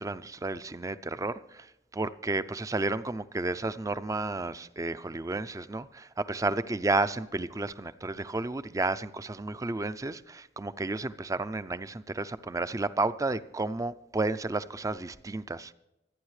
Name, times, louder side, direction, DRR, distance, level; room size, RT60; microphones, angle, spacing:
voice 1, 0.0-15.7, right 2 dB, 20° right, 0.4 m, -32 dB
25.5 x 9.6 x 3.2 m
head